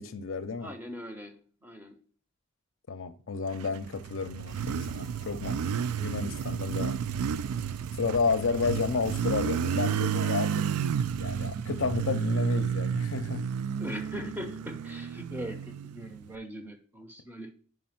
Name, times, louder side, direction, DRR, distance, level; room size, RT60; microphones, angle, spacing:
voice 1, 0.0-0.7 2.9-5.6 6.0-7.0 8.0-10.7 11.1-13.5, left 4 dB, 60° left, 0.5 m, -31 dB
voice 2, 0.6-2.0 13.8-17.5, equal, 10° right, 0.6 m, -41 dB
Motorcycle, 3.7-16.3, right 7 dB, 90° right, 0.3 m, -31 dB
sound 1, 4.4-10.8, right 1 dB, 60° right, 1.2 m, -49 dB
5.2 x 5.0 x 5.6 m
head